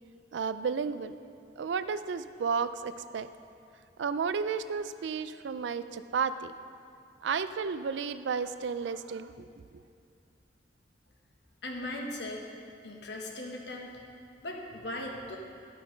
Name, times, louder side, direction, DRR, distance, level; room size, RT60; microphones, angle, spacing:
voice 1, 0.3-1.1 1.6-3.3 4.0-6.5 7.2-9.8, right 5 dB, 85° right, 12 dB, 0.4 m, -32 dB
voice 2, 11.6-12.4 12.8-13.9 14.4-15.4, left 1 dB, 70° left, 1 dB, 1.2 m, -38 dB
11.5 x 5.7 x 5.2 m, 2.4 s
head